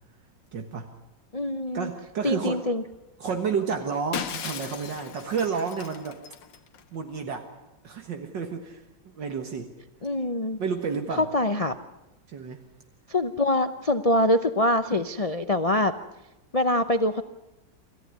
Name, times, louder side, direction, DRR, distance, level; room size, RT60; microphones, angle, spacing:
voice 1, 0.5-0.9 1.7-2.6 3.2-6.2 6.9-7.5 7.8-9.7 10.6-11.3 12.3-12.6, right 6 dB, 70° right, 5 dB, 2.2 m, -31 dB
voice 2, 1.3-1.9 2.2-2.8 10.0-10.6 11.2-11.7 13.1-15.9 16.5-17.2, left 1 dB, 55° left, 9 dB, 0.3 m, -24 dB
Shatter, 4.1-6.8, left 8 dB, 80° left, 1.8 m, -37 dB
26.5 x 14.5 x 9.6 m, 0.96 s
omnidirectional pair, 2.0 m